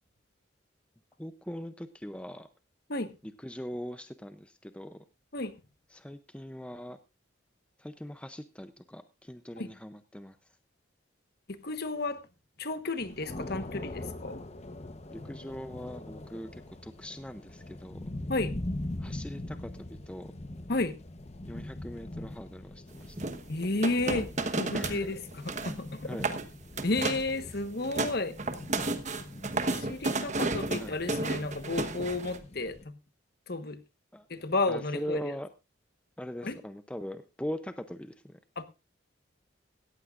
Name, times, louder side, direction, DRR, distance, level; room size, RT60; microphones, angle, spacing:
voice 1, 1.2-2.5 3.2-5.0 5.9-7.0 7.8-10.4 15.1-18.1 19.0-20.3 21.5-23.2 24.7-25.2 26.0-26.3 30.1-30.2 30.8-31.0 34.1-34.3 34.7-35.5 36.2-38.4, equal, 5° left, 10 dB, 0.5 m, -41 dB
voice 2, 11.6-12.2 12.6-14.4 18.3-18.5 20.7-20.9 23.5-24.3 24.6-26.1 26.8-28.4 29.7-32.9 33.5-33.8 34.3-35.3 36.4-36.5 38.6-38.7, left 2 dB, 55° left, 10 dB, 1.2 m, -32 dB
sound 1, 13.0-32.8, left 1 dB, 35° left, 0.9 m, -42 dB
sound 2, 23.2-25.0 25.3-25.8 26.1-26.4 26.8-27.3 27.7-32.4, right 2 dB, 40° right, 1.1 m, -32 dB
17.5 x 14.5 x 2.5 m, 0.27 s
head